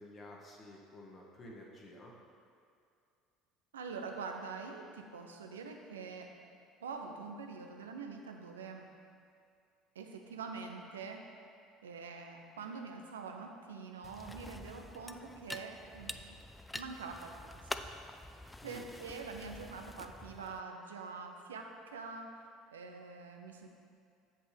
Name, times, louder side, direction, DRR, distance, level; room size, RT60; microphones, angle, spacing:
voice 1, 0.0-2.1 18.6-18.9, left 1 dB, 35° left, -2 dB, 1.3 m, -51 dB
voice 2, 3.7-6.3 6.8-8.9 9.9-11.2 11.8-16.2 16.7-17.9 18.6-22.3 22.7-23.7, right 4 dB, 80° right, 4 dB, 0.6 m, -45 dB
sound 1, 14.0-20.6, left 1 dB, 10° left, 0.3 m, -47 dB
7.9 x 7.5 x 3.4 m, 2.4 s
figure-of-eight pair, 65°, 0 cm